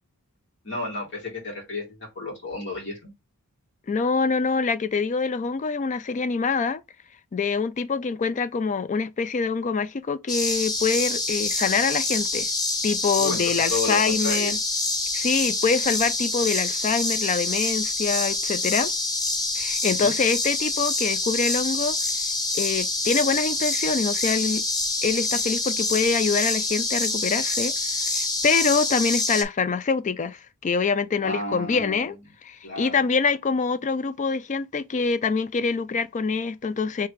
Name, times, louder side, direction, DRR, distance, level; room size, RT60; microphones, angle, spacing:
voice 1, 0.6-3.1 13.2-14.5 20.0-20.1 31.2-32.2 32.6-33.0, left 3 dB, 55° left, 2.4 m, -32 dB
voice 2, 3.9-6.8 7.3-12.5 12.8-14.6 15.1-18.9 19.6-22.0 22.6-24.6 25.0-32.1 32.4-37.1, left 5 dB, 35° left, 0.4 m, -25 dB
sound 1, 10.3-29.4, left 2 dB, 20° left, 0.8 m, -26 dB
3.3 x 3.3 x 4.8 m
head